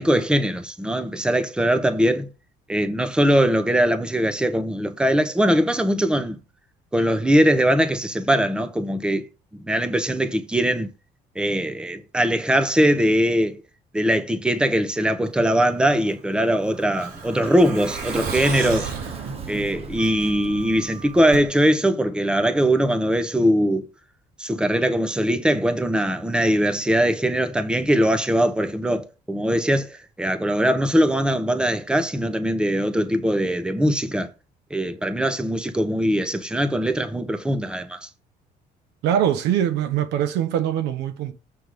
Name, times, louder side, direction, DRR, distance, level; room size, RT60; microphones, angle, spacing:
voice 1, 0.0-2.3 2.7-6.4 6.9-9.2 9.5-10.9 11.4-13.6 13.9-18.9 19.5-23.8 24.4-34.3 34.7-38.1, equal, 5° right, 0.9 m, -21 dB
Truck, 15.9-20.6 20.9-21.0 21.3-21.4, right 5 dB, 70° right, 3.8 m, -35 dB
Sliding door, 16.7-21.5, right 6 dB, 35° right, 0.8 m, -35 dB
voice 2, 39.0-41.3, right 10 dB, 90° right, 1.1 m, -22 dB
7.7 x 3.5 x 6.5 m
cardioid pair, 110°, 17 cm